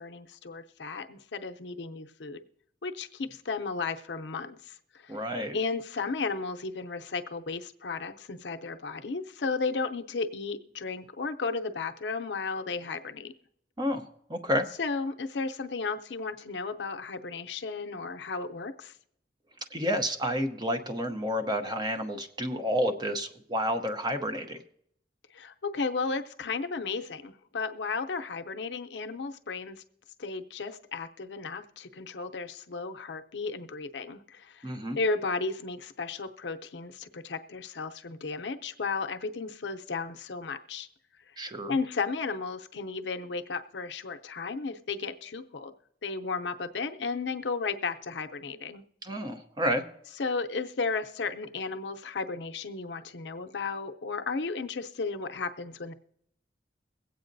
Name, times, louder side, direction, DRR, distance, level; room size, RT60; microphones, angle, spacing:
voice 1, 0.0-2.4 2.8-5.2 5.5-13.3 14.8-19.0 25.3-29.8 30.2-40.9 41.7-45.7 46.0-48.8 50.2-55.9, left 4 dB, 75° left, 7 dB, 0.6 m, -34 dB
voice 2, 5.1-5.5 13.8-14.7 19.7-24.6 34.6-35.0 41.4-41.8 49.0-49.8, equal, 25° right, 6 dB, 0.7 m, -30 dB
22.5 x 8.3 x 2.6 m, 0.71 s
head